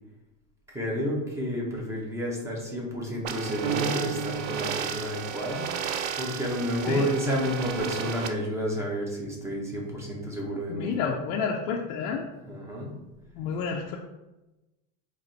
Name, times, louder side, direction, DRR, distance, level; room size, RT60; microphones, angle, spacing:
voice 1, 0.7-5.7 6.2-10.9 12.5-12.9, equal, 5° right, -2 dB, 0.6 m, -30 dB
sound 1, 3.2-8.3, right 7 dB, 80° right, 0.6 m, -34 dB
sound 2, 3.6-5.9, right 7 dB, 65° right, 1.2 m, -35 dB
voice 2, 10.7-12.3 13.3-14.0, left 5 dB, 45° left, -1 dB, 0.4 m, -30 dB
3.9 x 3.0 x 4.3 m, 1.0 s
cardioid pair, 165°, 41 cm